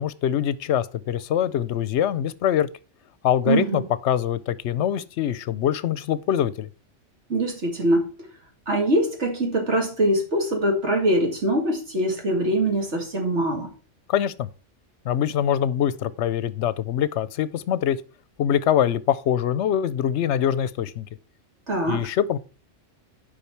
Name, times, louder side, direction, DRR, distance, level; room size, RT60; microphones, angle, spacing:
voice 1, 0.0-2.7 3.2-6.7 14.1-14.5 15.0-18.0 18.4-21.1 21.9-22.4, left 10 dB, 70° left, 0.9 m, -24 dB
voice 2, 3.5-3.9 7.3-8.1 8.7-13.7 21.7-22.1, right 1 dB, 65° right, 2.4 m, -23 dB
10.0 x 5.3 x 4.6 m
omnidirectional pair, 1.2 m